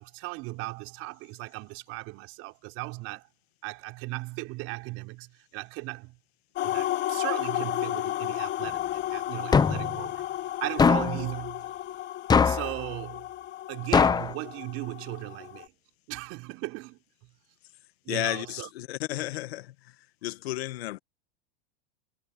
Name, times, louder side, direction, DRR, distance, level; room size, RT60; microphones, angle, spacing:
voice 1, 0.0-3.3 3.6-6.2 6.6-10.2 10.6-11.7 12.4-13.3 13.7-15.7 16.1-17.0 18.0-18.7 19.2-19.3, right 21 dB, 45° right, 5.0 m, -37 dB
sound 1, 6.6-15.7, left 13 dB, 35° left, 2.8 m, -33 dB
sound 2, 9.5-10.0 10.8-11.2 12.3-12.8 13.9-14.3, left 6 dB, 15° left, 0.9 m, -21 dB
voice 2, 18.1-20.0 20.2-21.0, left 16 dB, 75° left, 1.8 m, -33 dB
supercardioid pair, 135°, 31 cm